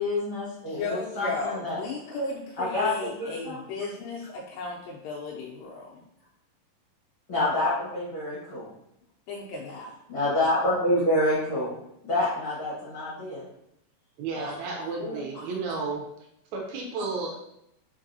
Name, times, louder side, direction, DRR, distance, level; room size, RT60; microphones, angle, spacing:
voice 1, 0.0-1.8 2.6-3.6 7.3-8.7 10.1-11.7 12.0-13.4 14.3-14.5 15.0-15.4 17.0-17.1, left 1 dB, 50° left, -9 dB, 1.6 m, -27 dB
voice 2, 0.7-6.0 9.3-9.9, left 3 dB, 85° left, -2 dB, 2.3 m, -35 dB
voice 3, 14.2-16.0 16.5-17.3, right 4 dB, 80° right, 0 dB, 1.7 m, -32 dB
4.6 x 4.0 x 2.6 m, 0.78 s
omnidirectional pair, 3.9 m